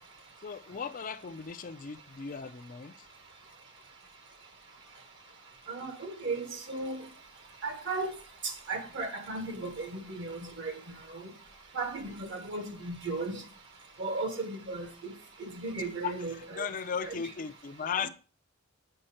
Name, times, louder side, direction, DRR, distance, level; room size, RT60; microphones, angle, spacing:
voice 1, 0.4-2.9 16.0-18.1, left 6 dB, 40° left, 0.5 m, -37 dB
voice 2, 5.7-7.0 7.6-8.1 8.4-10.7 11.1-11.2 11.7-13.4 14.0-15.1 15.4-16.7 17.0-17.2, right 3 dB, 60° right, 1.6 m, -36 dB
7.7 x 5.3 x 4.3 m
head